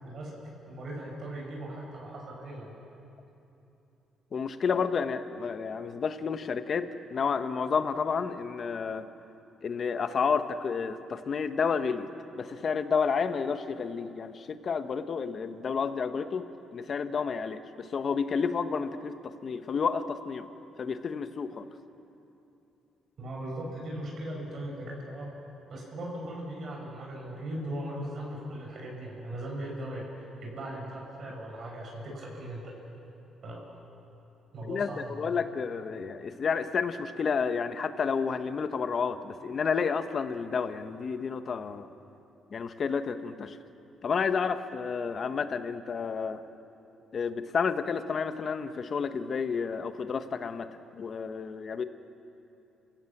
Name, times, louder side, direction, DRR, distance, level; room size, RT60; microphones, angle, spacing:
voice 1, 0.0-0.4 0.7-2.7 23.2-25.3 25.7-32.7 33.4-33.6 34.5-35.4, right 1 dB, 55° right, -2 dB, 6.5 m, -38 dB
voice 2, 4.3-9.1 9.6-12.1 12.4-16.5 16.7-20.5 20.8-21.7 34.7-41.9 42.5-43.6 44.0-46.4 47.1-51.8, left 5 dB, 50° left, 10 dB, 1.2 m, -30 dB
29.5 x 16.5 x 7.4 m, 2.9 s
cardioid pair, 90°, 0 cm